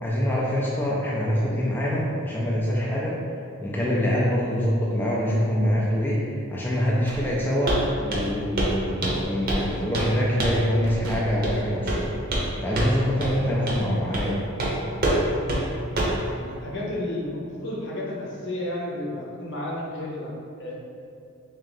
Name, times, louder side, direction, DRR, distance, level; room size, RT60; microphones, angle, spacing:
voice 1, 0.0-3.2 3.6-6.2 6.5-12.1 12.6-14.4, equal, 10° left, -5 dB, 0.3 m, -25 dB
sound 1, 6.8-8.3 8.6-8.9 9.2-10.0 10.5-10.6 10.8-12.7, right 1 dB, 85° right, 0.4 m, -39 dB
Walk footsteps, 7.7-7.8 8.1-8.3 8.6-8.8 9.0-9.7 9.9-10.1 10.4-10.7 11.4-11.6 11.9-12.5 12.8-12.9 13.2-13.3 13.7-13.8 14.1-14.3 14.6-14.7 15.0-15.2 15.5-15.6 16.0-16.2, right 1 dB, 45° right, 0.7 m, -25 dB
voice 2, 16.2-20.8, left 1 dB, 55° left, -3 dB, 0.7 m, -32 dB
3.5 x 2.8 x 3.7 m, 2.4 s
head